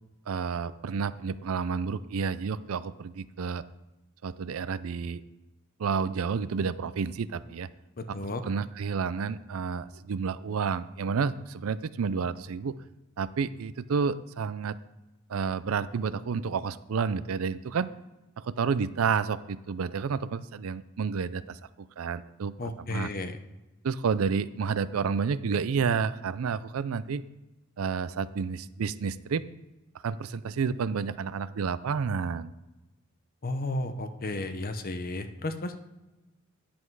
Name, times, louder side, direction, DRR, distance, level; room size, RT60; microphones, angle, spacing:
voice 1, 0.3-3.6 4.2-5.2 5.8-7.7 8.1-12.8 13.2-14.8 15.3-17.9 18.4-23.1 23.8-27.2 27.8-29.4 30.0-32.5, right 5 dB, 75° right, 16 dB, 0.4 m, -30 dB
voice 2, 8.0-8.4 22.6-23.4 33.4-35.7, left 2 dB, 45° left, 8 dB, 0.8 m, -33 dB
10.5 x 7.7 x 4.7 m, 1.0 s
head